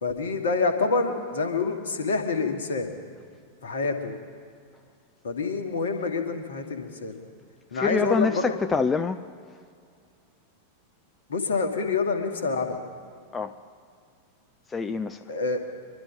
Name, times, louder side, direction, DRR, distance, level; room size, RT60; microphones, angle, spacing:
voice 1, 0.0-2.9 3.6-4.2 5.2-7.2 7.7-8.5 11.3-12.8 15.3-15.6, left 4 dB, 65° left, 6 dB, 1.5 m, -27 dB
voice 2, 7.7-9.2 13.3-13.6 14.7-15.2, left 4 dB, 15° left, 8 dB, 0.5 m, -26 dB
24.5 x 12.0 x 3.8 m, 2.2 s
figure-of-eight pair, 90°, 0 cm